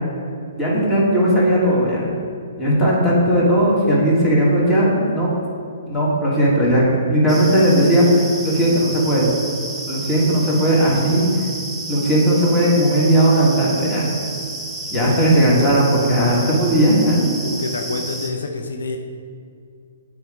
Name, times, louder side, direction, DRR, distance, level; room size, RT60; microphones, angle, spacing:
voice 1, 0.6-2.1 2.6-5.3 5.9-9.3 9.9-11.5 11.9-14.1 14.9-17.3, right 1 dB, 15° left, -6 dB, 1.7 m, -17 dB
sound 1, 7.3-18.3, right 2 dB, 5° right, 0.7 m, -31 dB
voice 2, 14.9-15.3 17.4-19.0, left 3 dB, 85° left, 4 dB, 0.6 m, -28 dB
7.9 x 4.8 x 3.6 m, 2.3 s
hypercardioid pair, 140°, 0 cm